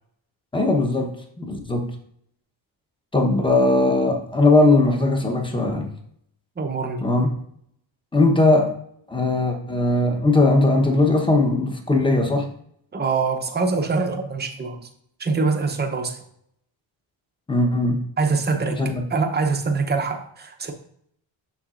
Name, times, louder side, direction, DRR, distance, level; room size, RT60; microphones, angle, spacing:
voice 1, 0.5-1.8 3.1-5.9 7.0-7.3 8.1-8.8 9.1-12.5 17.5-18.0 18.7-19.0, left 2 dB, 10° left, 0.9 m, -19 dB
voice 2, 6.6-7.1 12.9-14.9 15.2-16.2 18.2-20.7, right 4 dB, 20° right, 0.7 m, -24 dB
6.9 x 6.0 x 2.5 m
wide cardioid pair, 140°, 48 cm